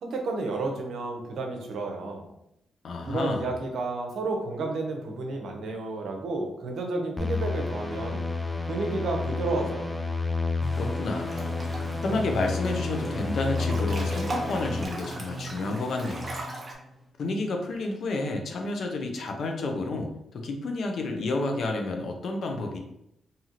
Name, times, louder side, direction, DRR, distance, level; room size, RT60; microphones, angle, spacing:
voice 1, 0.0-2.3 3.1-8.2 8.6-10.0, right 3 dB, 75° right, 2 dB, 0.6 m, -31 dB
voice 2, 2.8-3.5 10.8-11.5 12.0-16.4 17.2-22.8, left 2 dB, 65° left, 3 dB, 0.5 m, -30 dB
sound 1, 7.2-14.8, left 3 dB, 20° left, 0.4 m, -30 dB
sound 2, 10.6-17.1, right 2 dB, 5° right, 0.8 m, -40 dB
Breathing / Bathtub (filling or washing) / Splash splatter, 11.3-12.0 12.4-13.1 13.4-16.7, right 2 dB, 40° right, 0.8 m, -38 dB
2.7 x 2.4 x 2.9 m, 0.79 s
supercardioid pair, 55°, 0 cm